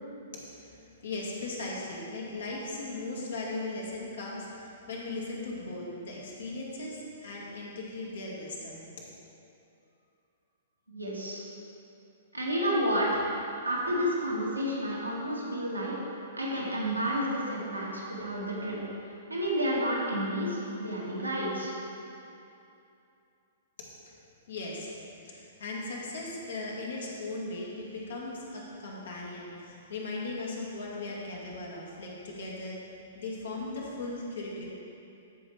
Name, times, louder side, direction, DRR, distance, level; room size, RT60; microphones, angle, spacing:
voice 1, 0.5-9.1 24.5-24.9 25.2-34.7, left 2 dB, 60° left, -3 dB, 1.9 m, -38 dB
voice 2, 10.9-11.4 12.3-13.2 13.6-15.9 16.3-18.8 19.3-21.7, equal, 90° right, -6 dB, 2.1 m, -30 dB
13.5 x 5.5 x 3.3 m, 2.7 s
figure-of-eight pair, 110°, 0 cm